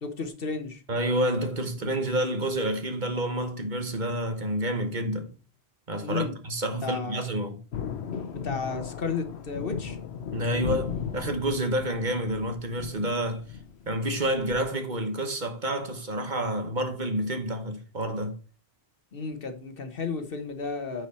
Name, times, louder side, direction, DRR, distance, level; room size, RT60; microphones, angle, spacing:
voice 1, 0.0-0.8 6.0-6.4 6.8-7.3 8.3-10.0 19.1-21.1, left 4 dB, 65° left, 1.4 m, -33 dB
voice 2, 0.9-5.3 5.9-7.6 10.3-13.4 13.9-18.4, right 1 dB, 50° right, 1.3 m, -29 dB
Thunder, 7.7-14.7, left 7 dB, 85° left, 1.1 m, -36 dB
9.3 x 4.7 x 4.3 m
omnidirectional pair, 1.0 m